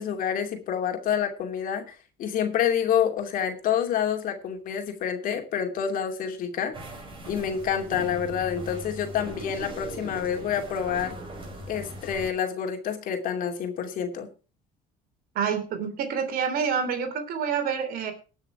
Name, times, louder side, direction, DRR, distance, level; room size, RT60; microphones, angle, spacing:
voice 1, 0.0-1.8 2.2-6.7 7.3-11.2 11.7-14.3, left 8 dB, 60° left, 5 dB, 2.6 m, -28 dB
sound 1, 6.7-12.3, right 1 dB, 35° right, 5.7 m, -39 dB
voice 2, 15.3-18.1, right 6 dB, 65° right, 8 dB, 3.0 m, -27 dB
19.0 x 6.4 x 4.7 m, 0.34 s
supercardioid pair, 95°, 16 cm